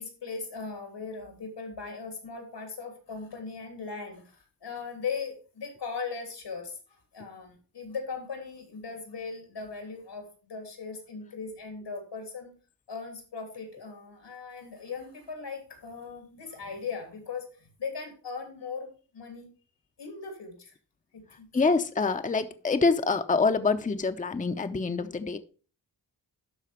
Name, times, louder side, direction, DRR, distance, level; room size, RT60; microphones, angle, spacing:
voice 1, 0.0-12.5 12.9-19.5 20.0-20.7 21.1-21.5 25.1-25.2, left 5 dB, 85° left, 5 dB, 3.0 m, -39 dB
voice 2, 21.5-25.4, left 4 dB, 20° left, 8 dB, 0.7 m, -26 dB
12.0 x 4.1 x 5.0 m, 0.38 s
cardioid pair, 70°, 41 cm